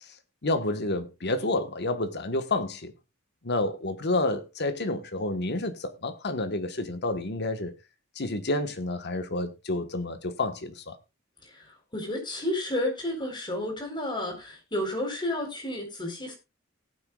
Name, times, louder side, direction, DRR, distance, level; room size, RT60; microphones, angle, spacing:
voice 1, 0.4-2.9 3.4-7.7 8.2-11.0, left 2 dB, 55° left, 1.4 m, -29 dB
voice 2, 11.4-16.3, left 1 dB, 25° left, 4.2 m, -31 dB
18.0 x 9.3 x 2.4 m
head